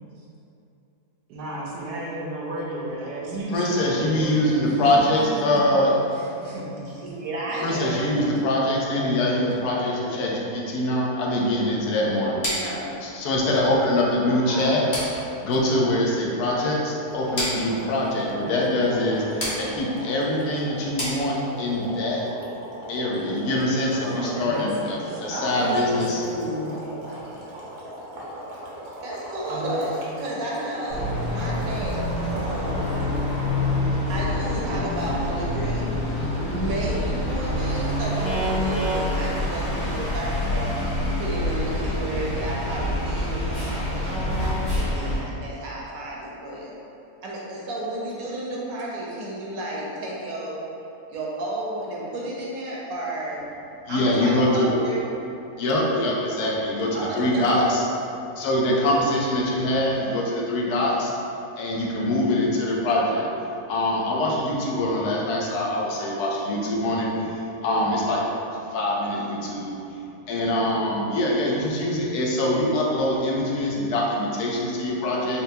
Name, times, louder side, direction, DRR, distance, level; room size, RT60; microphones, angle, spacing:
voice 1, 1.3-4.4 4.6-5.6 6.1-7.1 8.2-8.3 9.0-9.2 14.3-14.8 23.9-26.8 29.5-29.9 30.2-30.3, right 1 dB, 90° right, -5 dB, 1.3 m, -33 dB
voice 2, 3.5-5.9 7.6-12.4 13.0-14.8 15.4-22.3 22.9-26.2 53.8-54.7 55.6-57.8 58.4-61.1 61.6-63.3 63.7-68.2 68.7-75.4, left 1 dB, 80° left, -3 dB, 1.1 m, -24 dB
voice 3, 7.0-8.2 12.5-12.9 13.4-13.7 29.0-33.1 34.1-35.9 36.3-40.7 41.2-44.1 44.8-46.7 47.2-50.6 51.1-53.4 53.9-55.1 56.9-57.7, right 1 dB, 70° right, -4 dB, 1.0 m, -32 dB
sound 1, 12.4-21.8, equal, 40° left, 0.9 m, -34 dB
sound 2, 17.1-33.5, right 1 dB, 55° right, 0.6 m, -39 dB
sound 3, 30.9-45.2, left 1 dB, 60° left, 1.6 m, -26 dB
4.3 x 2.2 x 2.7 m, 2.8 s
omnidirectional pair, 1.7 m